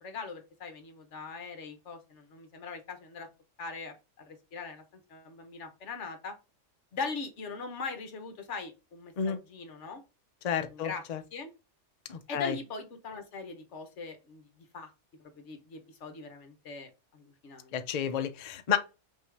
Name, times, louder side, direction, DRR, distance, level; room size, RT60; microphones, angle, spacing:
voice 1, 0.0-3.3 3.6-6.3 6.9-10.0 10.7-11.0 11.3-11.5 12.3-14.9 15.2-17.8, left 4 dB, 60° left, 1.2 m, -41 dB
voice 2, 10.4-11.2 12.1-12.6 17.7-18.8, left 8 dB, 75° left, 0.3 m, -31 dB
5.5 x 2.7 x 3.3 m
omnidirectional pair, 1.5 m